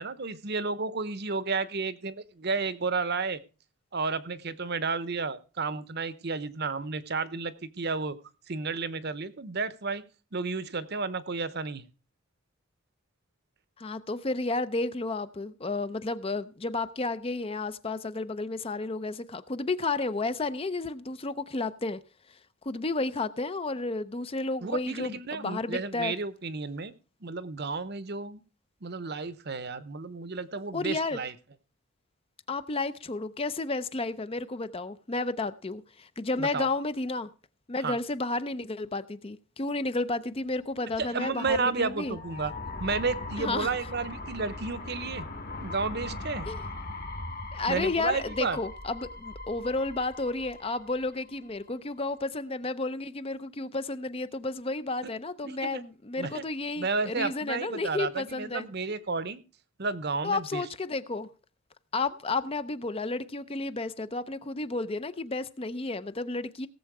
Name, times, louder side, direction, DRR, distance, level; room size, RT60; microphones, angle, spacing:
voice 1, 0.0-3.4 3.9-8.2 8.5-10.0 10.3-11.8 24.6-26.9 27.2-28.4 28.8-31.3 36.4-36.7 37.8-38.0 41.0-42.5 42.8-45.2 45.6-46.5 47.7-48.6 55.0-55.1 55.4-55.8 56.2-56.4 56.8-59.4 59.8-60.6, right 4 dB, 45° right, 0.8 m, -32 dB
voice 2, 13.8-22.0 22.3-22.4 22.6-26.1 30.7-31.2 32.5-37.3 37.7-42.2 43.4-43.7 46.5-46.6 47.5-58.7 60.2-61.3 61.9-66.7, left 3 dB, 25° left, 0.5 m, -32 dB
sound 1, 40.7-51.6, left 2 dB, 40° left, 1.6 m, -40 dB
17.5 x 7.4 x 4.8 m
head